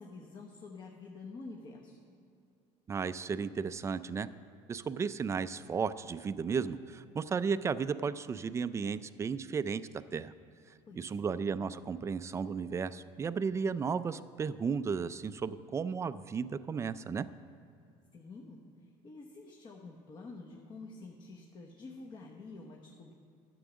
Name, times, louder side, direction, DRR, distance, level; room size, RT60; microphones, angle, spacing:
voice 1, 0.0-2.0 10.9-11.4 18.1-23.1, left 3 dB, 40° left, -1 dB, 1.1 m, -48 dB
voice 2, 2.9-4.3 4.7-9.8 10.1-10.3 10.9-17.3, right 5 dB, 25° right, 14 dB, 0.4 m, -34 dB
11.5 x 7.8 x 6.2 m, 2.6 s
cardioid pair, 120°, 12 cm